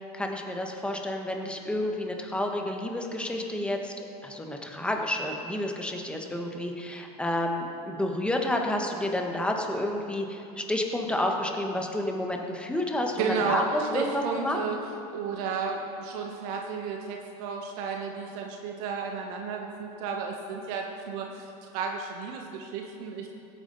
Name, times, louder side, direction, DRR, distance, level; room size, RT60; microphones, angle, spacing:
voice 1, 0.1-3.9 4.2-14.6, left 1 dB, 5° left, 2 dB, 1.3 m, -30 dB
voice 2, 13.2-14.8 15.1-23.3, right 5 dB, 65° right, 1 dB, 1.3 m, -33 dB
17.0 x 9.1 x 4.1 m, 2.7 s
supercardioid pair, 115°, 20 cm